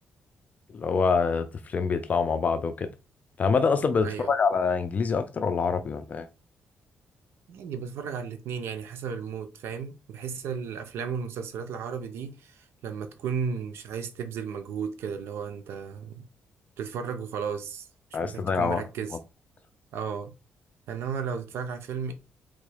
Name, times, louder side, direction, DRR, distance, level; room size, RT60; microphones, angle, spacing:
voice 1, 0.7-2.9 3.4-6.3 18.1-18.8, left 5 dB, 40° left, 0.4 m, -25 dB
voice 2, 7.5-16.2 16.8-17.9 18.2-19.2 19.9-20.3 20.9-22.1, right 6 dB, 80° right, 0.6 m, -34 dB
3.7 x 3.0 x 4.9 m
cardioid pair, 125°, 4 cm